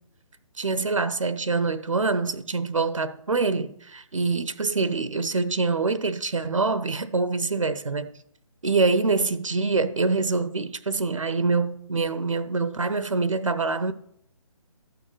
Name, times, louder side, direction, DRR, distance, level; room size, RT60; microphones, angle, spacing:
voice 1, 0.6-8.2 8.6-13.9, right 3 dB, 60° right, 1.0 m, -25 dB
13.0 x 6.8 x 6.3 m
figure-of-eight pair, 145°, 18 cm